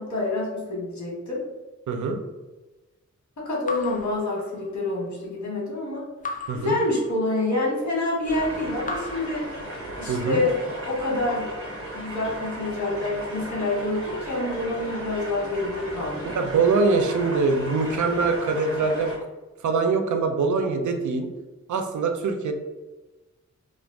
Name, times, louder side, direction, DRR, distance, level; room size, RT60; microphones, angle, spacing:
voice 1, 0.0-1.4 3.4-6.0 6.5-9.5 10.0-11.5 11.9-16.3, left 2 dB, 75° left, -4 dB, 1.1 m, -27 dB
voice 2, 1.9-2.2 6.5-6.8 10.1-10.4 16.3-19.1 19.6-21.3 21.7-22.5, right 4 dB, 85° right, 5 dB, 0.5 m, -23 dB
Raindrop / Drip, 3.7-5.0 6.2-7.6 8.8-10.2, left 2 dB, 30° left, 0.3 m, -37 dB
sound 1, 8.3-19.2, right 1 dB, 50° right, 0.8 m, -36 dB
2.4 x 2.1 x 3.4 m, 1.2 s
wide cardioid pair, 100°, 29 cm